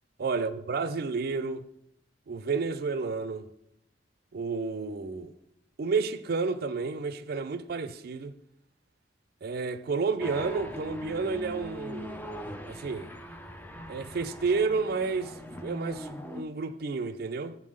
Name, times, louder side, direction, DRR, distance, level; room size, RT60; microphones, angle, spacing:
voice 1, 0.2-1.7 2.3-3.5 4.3-5.3 5.8-8.3 9.4-13.1 13.9-17.6, right 4 dB, 60° right, 0.5 m, -31 dB
sound 1, 10.2-16.4, equal, 10° left, 0.5 m, -41 dB
7.3 x 3.7 x 6.3 m
head